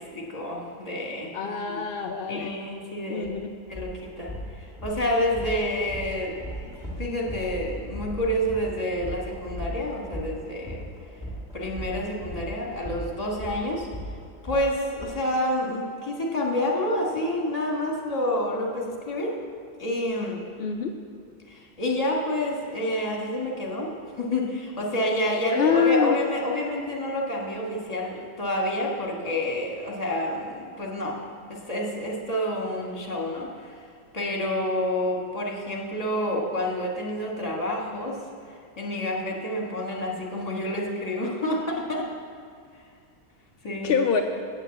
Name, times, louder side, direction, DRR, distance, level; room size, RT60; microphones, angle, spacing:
voice 1, 0.0-1.8 2.3-3.3 3.7-6.3 6.6-6.7 7.0-10.9 11.5-13.9 14.4-19.4 19.8-20.4 21.5-23.9 24.2-31.2 31.5-33.9 34.1-38.2 38.8-42.1 42.7-42.8 43.6-44.0, left 1 dB, 25° left, -2 dB, 1.6 m, -28 dB
voice 2, 1.3-2.5 3.1-3.5 20.6-20.9 25.5-26.2 43.8-44.2, left 7 dB, 65° left, 3 dB, 0.6 m, -25 dB
sound 1, 3.2-3.3 3.7-15.1, equal, ahead, 1.5 m, -37 dB
8.6 x 6.6 x 7.7 m, 2.3 s
omnidirectional pair, 1.5 m